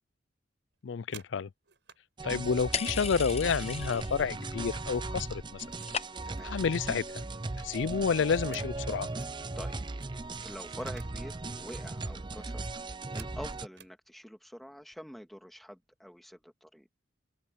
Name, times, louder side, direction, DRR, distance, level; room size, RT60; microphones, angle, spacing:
sound 1, 0.7-2.0 2.4-4.8 5.1-6.0 6.3-9.3 9.7-9.8 10.0-11.2 11.5-11.8 12.3-14.0 14.8-15.0 15.3-15.6 15.9-16.4, right 8 dB, 70° right, 6.8 m, -56 dB
voice 1, 0.8-1.5 2.2-5.6 6.4-7.2 7.6-9.1, left 6 dB, 75° left, 0.4 m, -30 dB
Synthwave a Lubed Wobble Dance, 2.2-13.7, right 2 dB, 25° right, 0.6 m, -38 dB
sound 2, 2.7-4.3 4.6-5.2 5.4-6.5, left 7 dB, 35° left, 0.9 m, -37 dB
voice 2, 10.4-12.6 13.1-16.9, equal, ahead, 2.2 m, -46 dB
open air
head